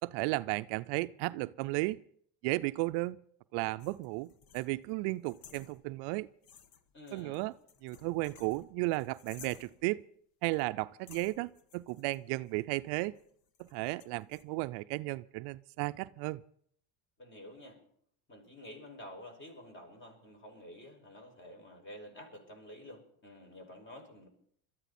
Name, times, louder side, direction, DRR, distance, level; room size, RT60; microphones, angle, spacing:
voice 1, 0.0-2.0 2.4-3.2 3.5-6.3 7.1-7.5 7.8-10.0 10.4-13.2 13.6-16.4, right 21 dB, 60° right, 14 dB, 0.5 m, -34 dB
sound 1, 3.8-6.2 6.4-9.9 10.5-10.7 11.1-14.4, left 7 dB, 50° left, 1.5 m, -57 dB
voice 2, 6.9-7.4 17.2-17.8 18.3-24.3, left 1 dB, 25° left, 4 dB, 5.7 m, -50 dB
21.5 x 13.5 x 4.2 m, 0.64 s
supercardioid pair, 100°, 44 cm